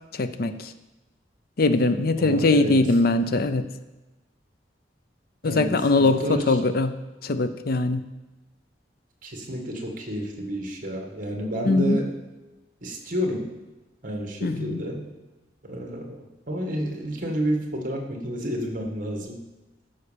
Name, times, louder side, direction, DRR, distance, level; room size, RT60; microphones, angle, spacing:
voice 1, 0.1-0.7 1.6-3.7 5.4-7.0 7.2-8.0 11.7-12.0 14.4-14.8, left 2 dB, 55° left, 10 dB, 0.6 m, -22 dB
voice 2, 2.2-2.8 5.4-6.6 9.2-12.1 12.8-13.5 14.0-15.1 15.6-19.4, equal, 50° right, 2 dB, 1.8 m, -30 dB
13.0 x 5.5 x 5.2 m, 1.1 s
head